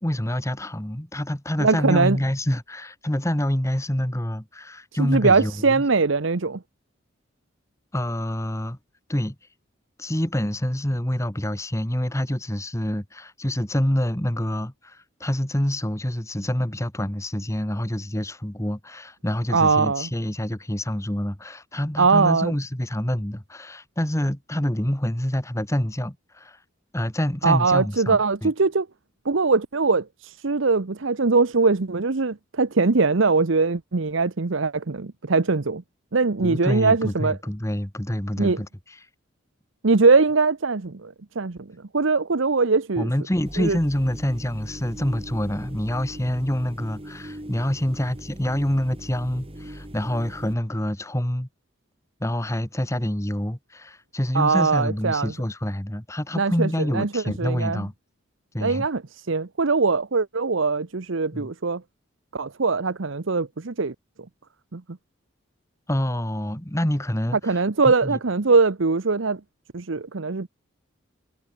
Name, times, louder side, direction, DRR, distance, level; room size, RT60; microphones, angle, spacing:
voice 1, 0.0-5.8 7.9-8.8 9.1-9.3 10.0-26.6 26.9-28.5 36.4-39.0 43.0-51.5 52.2-57.9 58.5-58.9 61.3-61.5 65.9-67.6 67.8-68.2, equal, 15° left, 1.5 m, -27 dB
voice 2, 1.6-2.2 5.0-6.6 19.5-20.1 22.0-22.5 27.4-28.9 29.2-35.8 36.1-37.4 38.4-38.6 39.8-43.1 43.6-43.8 54.3-55.3 56.4-57.9 58.6-61.8 62.3-63.9 64.7-64.8 67.4-69.4 69.7-70.5, right 4 dB, 70° right, 0.9 m, -21 dB
sound 1, 43.4-50.5, equal, 30° right, 2.6 m, -40 dB
head